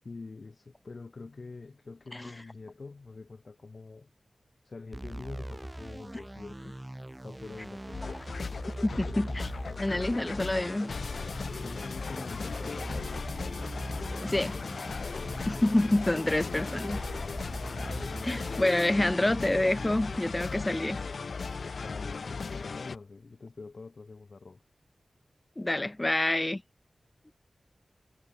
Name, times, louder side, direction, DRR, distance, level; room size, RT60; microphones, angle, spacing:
voice 1, 0.0-4.1 4.6-6.8 7.2-8.1 11.5-13.2 21.7-24.6, left 3 dB, 60° left, 7.6 m, -45 dB
sound 1, 4.9-20.3, right 1 dB, 15° right, 1.8 m, -41 dB
sound 2, 7.9-23.0, left 4 dB, 80° left, 0.5 m, -37 dB
voice 2, 8.8-9.5 9.8-10.9 14.2-14.6 15.5-17.0 18.2-21.0 25.6-26.6, left 1 dB, 25° left, 0.4 m, -27 dB
wide cardioid pair, 60°, 0 cm